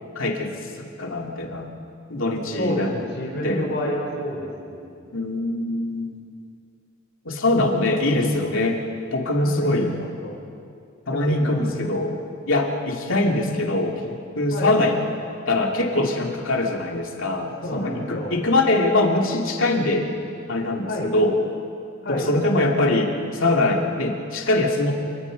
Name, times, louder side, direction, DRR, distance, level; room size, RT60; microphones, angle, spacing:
voice 1, 0.1-0.5 0.8-1.7 2.1-2.9 3.4-3.9 5.1-6.2 7.2-8.8 9.1-9.9 11.1-12.2 12.4-15.0 15.5-20.1 20.5-21.3 22.1-24.9, left 2 dB, 80° left, 1 dB, 2.7 m, -23 dB
voice 2, 2.6-5.0 7.9-8.6 9.4-10.4 11.1-11.9 14.5-14.8 17.6-18.4 20.9-21.1 22.0-22.4, left 1 dB, 60° left, -1 dB, 4.1 m, -30 dB
27.0 x 19.5 x 5.3 m, 2.4 s
head